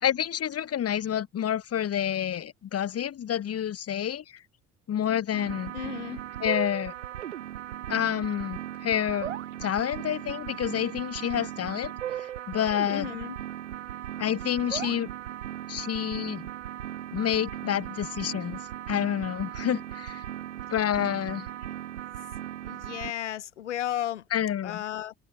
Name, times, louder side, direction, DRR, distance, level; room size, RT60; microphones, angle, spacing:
voice 1, 0.0-4.4 4.9-5.7 6.4-6.9 7.9-9.3 9.6-13.1 14.2-15.1 15.7-16.5 17.1-18.6 18.9-20.2 20.7-21.5 24.3-24.8, left 10 dB, 45° left, 1.6 m, -28 dB
sound 1, 5.3-23.1, right 11 dB, 90° right, 1.2 m, -37 dB
voice 2, 5.7-6.2 12.9-13.4 22.6-24.2 24.6-25.1, left 11 dB, 90° left, 1.0 m, -34 dB
open air
hypercardioid pair, 55°, 35 cm